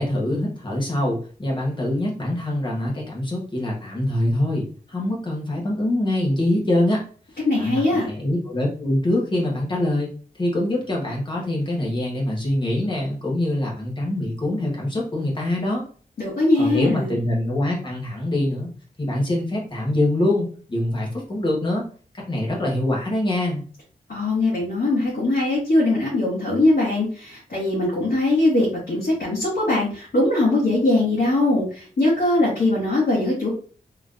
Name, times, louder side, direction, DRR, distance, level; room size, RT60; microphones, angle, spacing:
voice 1, 0.0-7.0 7.5-10.1 10.4-15.8 16.6-18.7 19.0-21.8 22.1-23.6, left 1 dB, 30° left, -2 dB, 1.2 m, -24 dB
voice 2, 7.5-8.1 16.2-17.2 24.1-33.5, left 2 dB, 85° left, -9 dB, 1.8 m, -21 dB
3.8 x 3.1 x 2.5 m, 0.41 s
wide cardioid pair, 145°, 16 cm